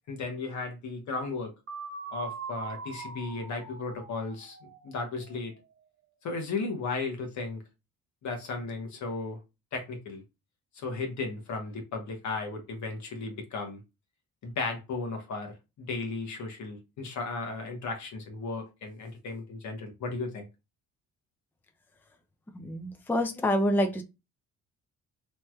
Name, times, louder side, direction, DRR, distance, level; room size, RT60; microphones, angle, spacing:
voice 1, 0.1-1.5 2.1-5.5 6.2-7.6 8.2-9.4 9.7-10.2 10.7-13.8 14.4-20.5, left 3 dB, 70° left, 1.3 m, -35 dB
sound 1, 1.7-5.5, right 5 dB, 50° right, 1.1 m, -42 dB
voice 2, 22.5-24.0, equal, 5° left, 0.5 m, -27 dB
3.2 x 2.9 x 2.3 m
cardioid pair, 90°, 30 cm